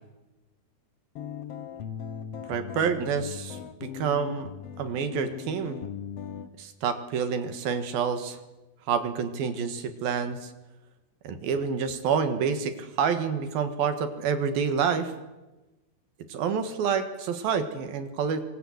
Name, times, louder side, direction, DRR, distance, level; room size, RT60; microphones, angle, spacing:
sound 1, 1.2-6.5, left 8 dB, 85° left, 1.3 m, -39 dB
voice 1, 2.5-4.5 4.8-5.8 6.6-8.4 8.9-10.5 11.2-15.1 16.3-18.4, right 6 dB, 65° right, 9 dB, 3.3 m, -28 dB
26.0 x 25.5 x 8.0 m, 1.1 s
omnidirectional pair, 4.8 m